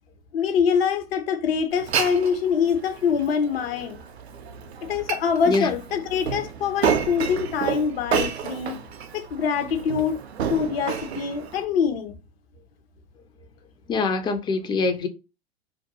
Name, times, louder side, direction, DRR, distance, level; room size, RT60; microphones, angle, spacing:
voice 1, 0.3-4.0 4.8-8.8 9.1-10.2 10.5-12.2, left 6 dB, 70° left, 0.6 m, -24 dB
Glass, 1.7-11.6, right 7 dB, 85° right, 0.5 m, -30 dB
voice 2, 13.9-15.1, left 3 dB, 15° left, 0.3 m, -24 dB
2.5 x 2.2 x 2.7 m
figure-of-eight pair, 90°, 31 cm